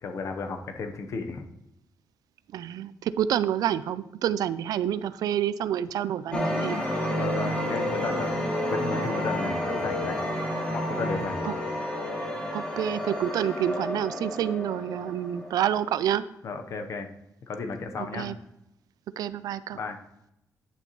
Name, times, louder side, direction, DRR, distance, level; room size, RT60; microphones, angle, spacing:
voice 1, 0.0-1.5 7.2-10.2 10.7-11.5 16.4-17.1 17.5-18.3 19.7-20.0, left 4 dB, 55° left, 6 dB, 0.8 m, -34 dB
voice 2, 2.5-6.8 12.5-16.2 18.0-18.3 19.2-19.8, right 10 dB, 80° right, 16 dB, 0.4 m, -28 dB
sound 1, 6.3-16.0, left 1 dB, 15° left, 1.4 m, -30 dB
10.0 x 6.8 x 3.0 m, 0.83 s
wide cardioid pair, 165°, 6 cm